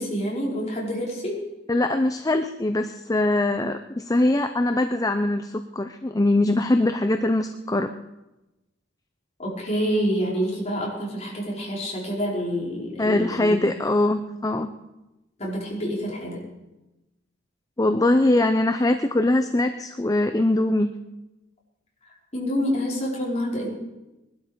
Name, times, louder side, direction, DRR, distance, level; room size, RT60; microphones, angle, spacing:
voice 1, 0.0-1.4 9.4-13.5 15.4-16.4 22.3-23.7, equal, 35° left, -3 dB, 4.6 m, -27 dB
voice 2, 1.7-7.9 13.0-14.7 17.8-20.9, left 2 dB, 20° left, 8 dB, 0.6 m, -22 dB
21.0 x 12.0 x 5.1 m, 1.0 s
head